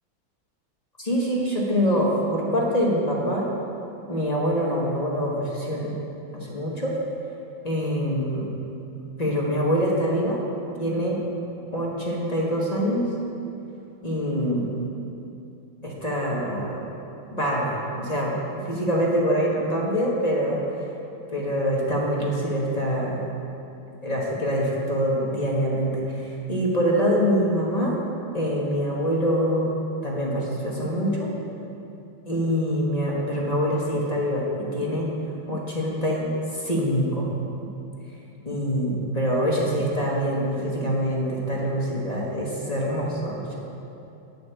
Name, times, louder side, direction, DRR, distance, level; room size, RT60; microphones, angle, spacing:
voice 1, 1.0-3.5 4.1-5.9 6.3-6.9 7.6-8.5 9.2-10.4 10.8-11.2 11.7-13.1 14.0-14.9 15.8-16.8 17.3-20.6 21.3-23.2 24.0-27.9 28.3-31.3 32.3-35.1 35.5-37.3 38.4-43.5, equal, 25° left, -3 dB, 1.2 m, -25 dB
9.5 x 7.0 x 6.8 m, 2.7 s
omnidirectional pair, 2.1 m